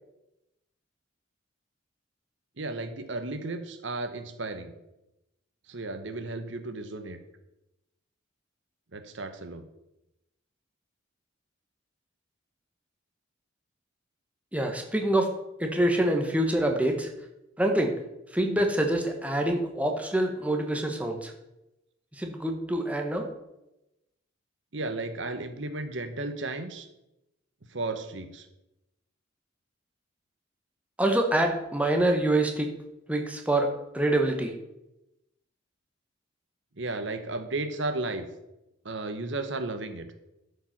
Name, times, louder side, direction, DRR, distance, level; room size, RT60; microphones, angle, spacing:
voice 1, 2.6-4.7 5.7-7.2 8.9-9.6 24.7-26.9 27.7-28.5 36.8-38.3 38.8-40.1, right 2 dB, 65° right, 8 dB, 1.2 m, -34 dB
voice 2, 14.5-15.3 15.6-17.1 17.6-17.9 18.3-21.3 22.2-23.3 31.0-32.7 33.1-34.5, right 1 dB, 5° right, 3 dB, 1.2 m, -26 dB
12.5 x 5.4 x 5.9 m, 0.92 s
head